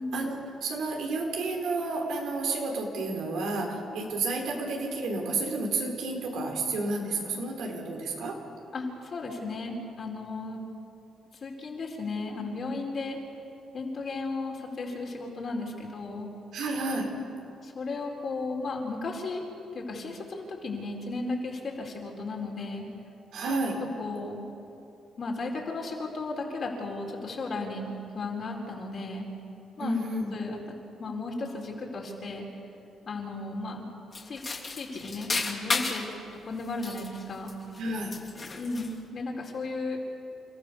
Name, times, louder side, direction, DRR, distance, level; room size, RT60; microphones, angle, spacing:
voice 1, 0.1-8.4 16.5-17.1 23.3-23.8 29.8-30.4 37.8-38.2, right 2 dB, 80° right, 1 dB, 4.2 m, -31 dB
voice 2, 8.7-10.6 11.4-13.2 13.7-16.3 17.6-19.5 19.7-22.9 23.5-23.6 24.0-24.4 25.2-27.9 28.1-29.3 29.8-30.0 30.3-30.6 31.0-32.5 33.1-33.9 34.2-34.4 34.7-36.1 36.4-37.5 38.6-40.0, left 3 dB, 50° left, 0 dB, 4.5 m, -35 dB
taking pills, 34.1-36.1 36.6-37.8 38.1-39.0, left 3 dB, 30° left, 2.8 m, -33 dB
29.0 x 14.5 x 7.0 m, 2.8 s
cardioid pair, 90°, 0 cm